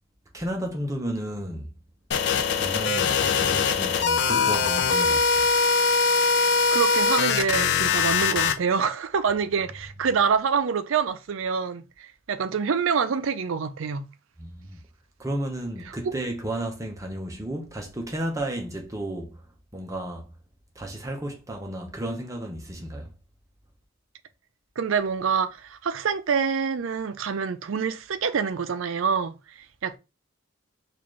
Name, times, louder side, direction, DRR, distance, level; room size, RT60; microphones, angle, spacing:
voice 1, 0.3-1.7 2.5-5.5 14.4-14.8 15.2-19.4 19.7-20.3 20.8-23.1, right 1 dB, 15° right, 0.7 m, -33 dB
sound 1, 2.1-8.5, left 5 dB, 55° left, 0.4 m, -22 dB
voice 2, 6.7-14.1 15.9-16.1 24.8-30.0, right 6 dB, 70° right, 0.4 m, -26 dB
3.9 x 2.5 x 3.1 m
head